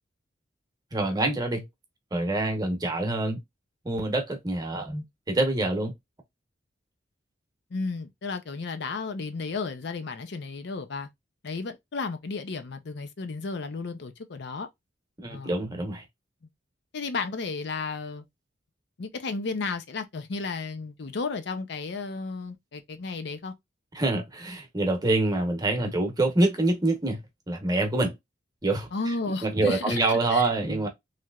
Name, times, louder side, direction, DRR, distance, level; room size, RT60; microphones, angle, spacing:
voice 1, 0.9-1.6 2.1-3.4 3.8-5.9 15.2-16.0 23.9-27.2 27.5-28.1 28.6-29.1 29.4-30.9, right 2 dB, 20° right, 0.9 m, -26 dB
voice 2, 7.7-11.1 11.4-14.7 15.3-15.5 16.9-18.2 19.0-23.5 28.9-30.5, left 4 dB, 65° left, 0.5 m, -33 dB
3.2 x 2.9 x 2.3 m
head